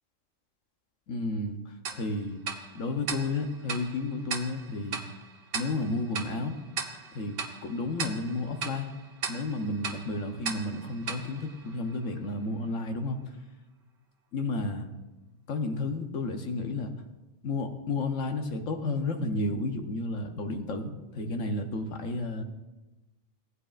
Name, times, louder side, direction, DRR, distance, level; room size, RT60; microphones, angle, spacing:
voice 1, 1.1-2.4 2.7-5.0 5.5-6.6 7.1-7.4 7.6-8.9 9.3-13.4 14.3-14.9 15.5-16.9 17.4-22.4, left 2 dB, 85° left, 6 dB, 1.3 m, -32 dB
Tick-tock, 1.8-12.3, right 5 dB, 85° right, 1.4 m, -39 dB
16.0 x 9.8 x 2.5 m, 1.1 s
omnidirectional pair, 1.3 m